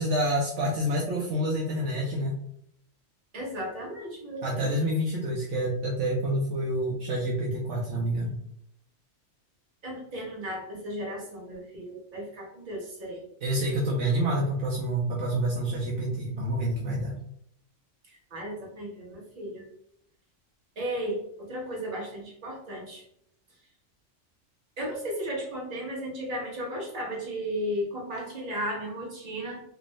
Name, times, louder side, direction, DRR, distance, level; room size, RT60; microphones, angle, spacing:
voice 1, 0.0-2.4 4.4-8.4 13.4-17.1, right 1 dB, 70° right, -3 dB, 1.0 m, -28 dB
voice 2, 3.3-4.8 9.8-13.2 18.3-19.7 20.8-23.0 24.8-29.6, equal, 40° right, -3 dB, 1.2 m, -35 dB
3.5 x 2.5 x 3.1 m, 0.71 s
omnidirectional pair, 1.3 m